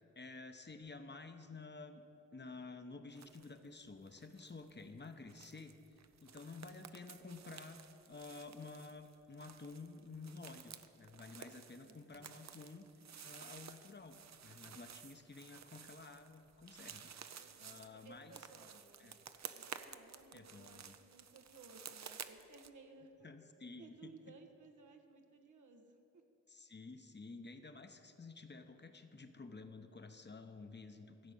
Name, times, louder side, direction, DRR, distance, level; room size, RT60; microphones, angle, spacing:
voice 1, 0.2-2.0 2.3-5.8 6.2-7.8 8.1-12.9 13.2-14.2 14.4-17.2 17.6-18.4 19.0-19.1 20.3-20.9 23.2-24.1 26.5-31.3, left 3 dB, 35° left, 7 dB, 0.9 m, -52 dB
sound 1, 3.1-3.6 3.8-22.7, right 7 dB, 65° right, 0.6 m, -54 dB
voice 2, 11.8-12.3 17.4-19.2 19.5-23.3 23.8-26.2, right 3 dB, 85° right, 4 dB, 1.1 m, -60 dB
14.5 x 5.0 x 8.5 m, 2.9 s
cardioid pair, 55°, 30 cm